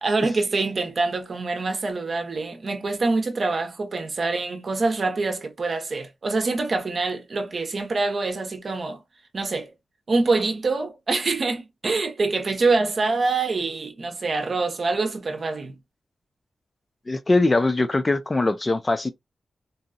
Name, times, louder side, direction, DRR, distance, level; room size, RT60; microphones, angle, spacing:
voice 1, 0.0-9.0 9.3-9.7 10.1-15.8, right 3 dB, 45° right, 0.8 m, -25 dB
voice 2, 17.1-19.1, left 2 dB, 25° left, 0.4 m, -21 dB
4.0 x 2.3 x 2.5 m
wide cardioid pair, 155°, 0 cm